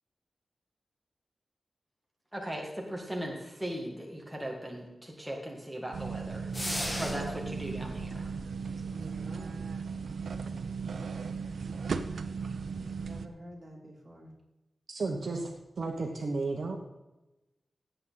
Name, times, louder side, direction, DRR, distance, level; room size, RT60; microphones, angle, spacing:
voice 1, 2.3-6.5 7.0-8.3, equal, 5° right, -1 dB, 1.9 m, -38 dB
sound 1, 5.9-13.3, right 5 dB, 80° right, 0.7 m, -36 dB
Bird, 6.5-9.0, left 1 dB, 50° left, 2.9 m, -50 dB
sound 2, 6.5-7.5, left 1 dB, 15° left, 1.3 m, -35 dB
voice 2, 9.0-9.8 13.0-14.3, equal, 25° right, -3 dB, 3.4 m, -49 dB
voice 3, 14.9-16.8, right 3 dB, 60° right, 3 dB, 1.2 m, -33 dB
16.5 x 8.0 x 4.0 m, 1.0 s
wide cardioid pair, 110°, 0 cm